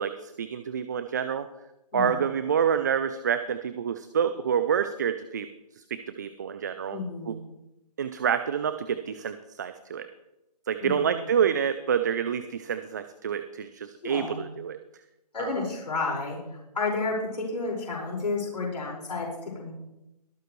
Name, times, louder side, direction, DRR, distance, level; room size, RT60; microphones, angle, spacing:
voice 1, 0.0-1.5 1.9-5.5 5.7-7.0 7.3-7.4 8.0-10.1 10.7-14.8 15.4-15.7, right 7 dB, 25° right, 11 dB, 0.4 m, -28 dB
voice 2, 6.9-7.4 10.8-11.1 14.0-14.4 15.3-16.4 16.7-19.7, left 3 dB, 80° left, -3 dB, 5.0 m, -31 dB
23.5 x 7.8 x 3.1 m, 0.91 s
hypercardioid pair, 160°, 21 cm